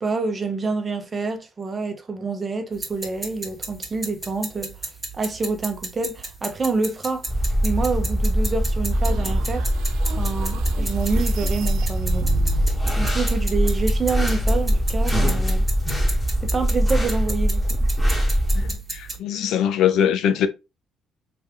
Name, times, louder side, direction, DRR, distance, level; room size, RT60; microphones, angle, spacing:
voice 1, 0.0-4.8 5.1-7.3 7.6-9.7 10.2-12.3 12.5-12.7 13.0-15.7 16.4-17.6, right 4 dB, 30° right, 0.9 m, -27 dB
sound 1, 2.7-19.2, right 2 dB, 10° right, 1.6 m, -35 dB
sound 2, 7.3-18.7, equal, 5° left, 1.8 m, -22 dB
sound 3, 8.9-12.9, right 4 dB, 80° right, 0.5 m, -31 dB
voice 2, 18.5-20.5, left 9 dB, 75° left, 0.6 m, -22 dB
3.4 x 3.2 x 3.4 m
cardioid pair, 90°, 0 cm